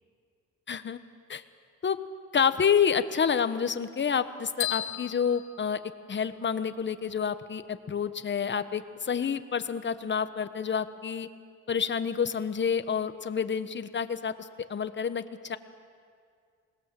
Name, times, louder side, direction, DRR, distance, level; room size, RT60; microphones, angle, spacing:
voice 1, 0.7-1.0 1.3-1.4 1.8-2.0 2.3-5.8 6.1-11.3 11.7-15.6, left 7 dB, 40° left, 11 dB, 1.2 m, -28 dB
sound 1, 4.6-6.5, left 12 dB, 85° left, 1.7 m, -35 dB
27.0 x 20.0 x 7.7 m, 2.2 s
cardioid pair, 90°, 30 cm